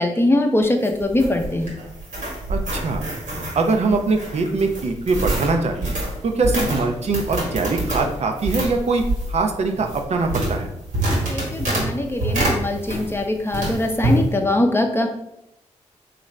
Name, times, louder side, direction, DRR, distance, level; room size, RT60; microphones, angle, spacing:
voice 1, 0.0-1.7 11.3-15.1, left 1 dB, 15° left, 3 dB, 0.6 m, -21 dB
sound 1, 0.6-13.2 13.5-14.2, right 1 dB, 75° right, 1.2 m, -26 dB
voice 2, 2.5-3.0 3.4-5.9 6.2-9.0 9.3-10.7, right 3 dB, 55° right, 4 dB, 0.5 m, -22 dB
3.0 x 2.5 x 3.2 m, 0.84 s
supercardioid pair, 45°, 13 cm